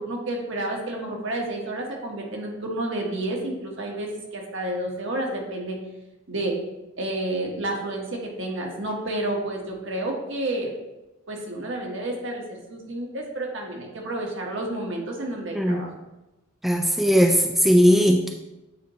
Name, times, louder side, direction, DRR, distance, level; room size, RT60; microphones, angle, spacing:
voice 1, 0.0-5.8 6.3-6.6 7.0-10.7 11.3-15.9, right 1 dB, 65° right, 0 dB, 1.2 m, -30 dB
voice 2, 16.6-18.3, equal, ahead, 2 dB, 0.3 m, -18 dB
8.2 x 2.9 x 4.2 m, 0.99 s
head